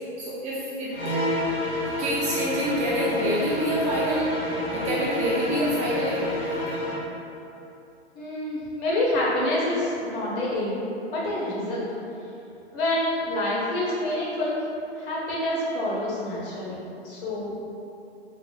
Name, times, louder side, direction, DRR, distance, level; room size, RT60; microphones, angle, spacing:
voice 1, 0.2-1.1 2.0-4.3 4.7-6.3, right 1 dB, 25° right, -6 dB, 0.3 m, -27 dB
sound 1, 0.9-7.1, left 1 dB, 80° left, 1.4 m, -28 dB
voice 2, 8.1-10.8 11.1-11.9 12.7-14.6 15.0-17.6, left 1 dB, 50° left, -6 dB, 1.2 m, -27 dB
4.0 x 3.0 x 2.3 m, 2.8 s
hypercardioid pair, 115°, 33 cm